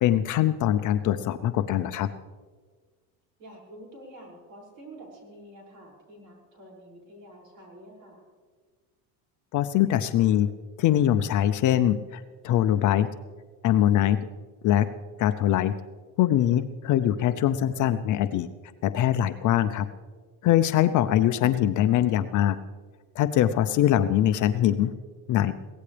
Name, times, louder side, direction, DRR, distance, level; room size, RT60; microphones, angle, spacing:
voice 1, 0.0-2.1 9.5-10.5 10.8-13.1 13.6-14.2 14.6-14.9 15.2-15.7 16.2-18.5 18.8-19.9 20.4-22.6 23.2-24.9 25.3-25.5, left 11 dB, 45° left, 10 dB, 0.6 m, -22 dB
voice 2, 3.4-8.2 20.9-21.0, right 1 dB, 45° right, -1 dB, 6.2 m, -48 dB
23.0 x 17.0 x 3.4 m, 1.5 s
cardioid pair, 140°, 43 cm